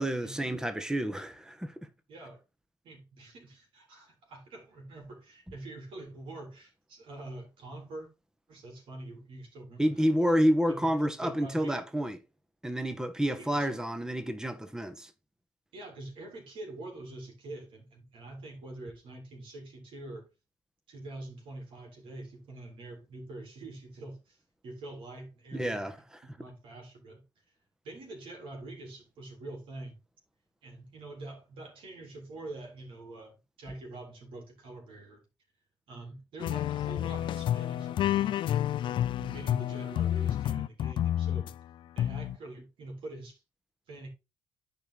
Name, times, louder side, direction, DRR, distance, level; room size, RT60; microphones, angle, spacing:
voice 1, 0.0-1.7 9.8-12.2 12.6-15.1 25.5-25.9, equal, 5° right, 1.4 m, -29 dB
voice 2, 2.1-2.4 2.8-8.1 8.5-10.1 10.7-11.8 13.4-13.7 15.7-20.3 20.9-24.4 24.6-25.9 26.3-27.2 27.8-30.0 30.6-35.2 35.9-38.4 39.2-41.5 42.0-43.4 43.9-44.1, right 2 dB, 65° right, 3.7 m, -45 dB
sound 1, 36.4-41.5 42.0-42.4, left 11 dB, 60° left, 0.5 m, -29 dB
10.0 x 4.7 x 4.1 m
hypercardioid pair, 50°, 10 cm